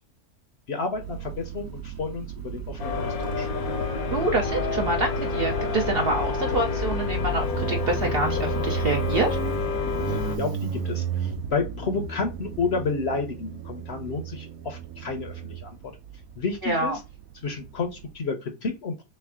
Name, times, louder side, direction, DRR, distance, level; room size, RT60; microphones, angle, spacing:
voice 1, 0.7-3.5 10.0-15.7 16.4-17.0 17.4-19.0, left 4 dB, 55° left, 6 dB, 0.9 m, -31 dB
Motorcycle, 0.9-18.1, right 8 dB, 75° right, 1.0 m, -35 dB
sound 1, 2.8-10.4, left 5 dB, 75° left, 1.3 m, -28 dB
voice 2, 4.1-9.4 16.6-17.0, right 2 dB, 55° right, 3 dB, 0.7 m, -26 dB
3.3 x 3.3 x 3.5 m, 0.26 s
omnidirectional pair, 1.6 m